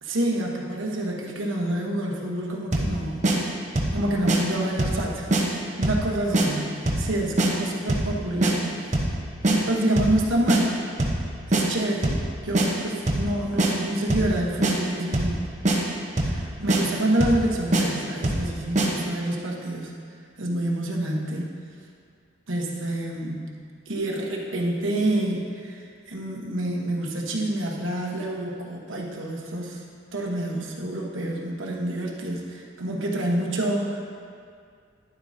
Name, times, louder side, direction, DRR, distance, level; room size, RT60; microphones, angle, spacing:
voice 1, 0.0-3.3 3.9-5.3 5.8-8.7 9.4-10.8 11.5-15.5 16.3-19.9 20.4-21.5 22.5-23.5 23.9-29.8 30.1-34.0, right 1 dB, 80° right, -1 dB, 1.2 m, -27 dB
sound 1, 2.7-2.9 3.2-3.4 3.8-4.0 4.3-4.4 4.8-5.0 5.3-5.4 5.8-6.0 6.3-6.5 6.9-7.1 7.4-7.5 7.9-8.1 8.4-8.5 8.9-9.1 9.4-9.6 10.0-10.2 10.5-10.6 11.0-11.2 11.5-11.6 12.0-12.3 12.5-12.7 13.1-13.3 13.6-13.7 14.1-14.3 14.6-14.7 15.1-15.4 15.6-15.8 16.2-16.4 16.7-16.8 17.2-17.4 17.7-17.8 18.2-18.5 18.8-18.9, right 2 dB, 35° right, 0.9 m, -22 dB
11.0 x 8.1 x 2.8 m, 2.3 s
head